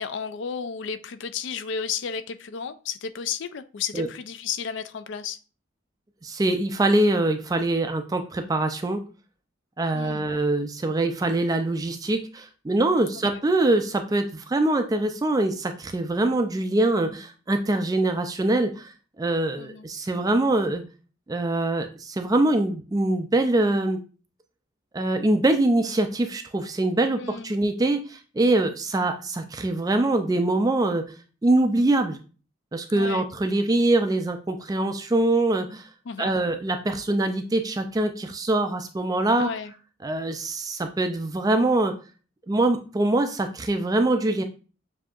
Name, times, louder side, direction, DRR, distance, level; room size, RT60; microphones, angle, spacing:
voice 1, 0.0-5.4 9.9-10.3 19.6-19.9 27.1-27.6 32.9-33.3 36.1-36.4 39.4-39.7, left 6 dB, 60° left, 11 dB, 0.4 m, -33 dB
voice 2, 6.2-9.0 9.8-18.9 19.2-20.8 21.3-24.0 24.9-31.0 31.4-32.2 32.7-35.9 36.2-39.5 40.0-41.9 42.5-44.4, right 2 dB, 15° right, 7 dB, 0.3 m, -23 dB
7.2 x 2.8 x 2.4 m, 0.37 s
head